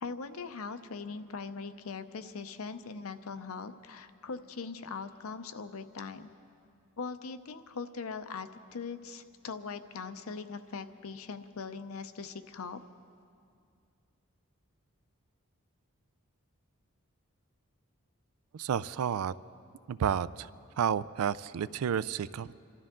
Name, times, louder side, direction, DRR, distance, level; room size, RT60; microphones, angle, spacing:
voice 1, 0.0-6.3 7.0-12.8, left 4 dB, 75° left, 10 dB, 0.7 m, -41 dB
voice 2, 18.5-19.3 19.9-20.5 20.8-22.5, right 8 dB, 85° right, 18 dB, 0.4 m, -31 dB
27.0 x 12.5 x 3.7 m, 2.4 s
head